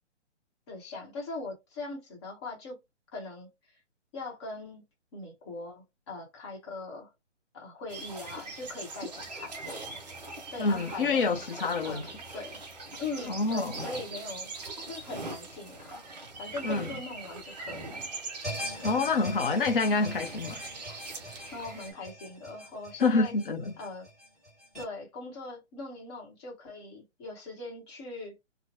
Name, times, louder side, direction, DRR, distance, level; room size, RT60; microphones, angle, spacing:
voice 1, 0.7-2.8 3.1-3.5 4.1-4.8 5.1-7.1 7.5-9.8 10.5-11.4 11.8-12.6 13.0-14.5 14.9-16.0 16.4-18.0 21.5-23.3 23.8-24.1 24.8-28.4, left 3 dB, 20° left, 1.0 m, -41 dB
sound 1, 7.9-21.9, right 3 dB, 35° right, 0.6 m, -42 dB
voice 2, 10.6-12.1 13.3-13.9 16.6-16.9 18.8-20.6 23.0-23.7, left 3 dB, 45° left, 0.7 m, -27 dB
sound 2, 18.4-24.8, left 1 dB, ahead, 1.6 m, -41 dB
2.8 x 2.1 x 2.8 m
hypercardioid pair, 150°, 37 cm